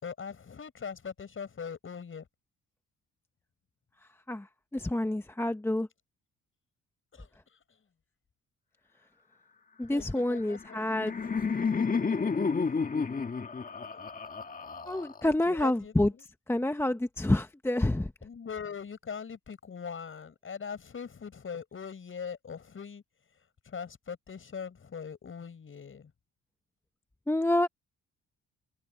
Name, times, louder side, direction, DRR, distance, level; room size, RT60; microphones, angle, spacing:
voice 1, 0.0-2.3 7.1-7.3 9.9-10.6 11.9-12.0 13.5-14.1 15.2-15.9 18.2-23.0 23.6-26.1, left 6 dB, 45° left, 6.7 m, -41 dB
voice 2, 4.3-5.9 9.8-11.1 14.9-18.1 27.3-27.7, left 1 dB, 10° left, 1.0 m, -28 dB
Laughter, 10.4-15.4, left 5 dB, 30° left, 1.6 m, -31 dB
open air
cardioid pair, 90°, 30 cm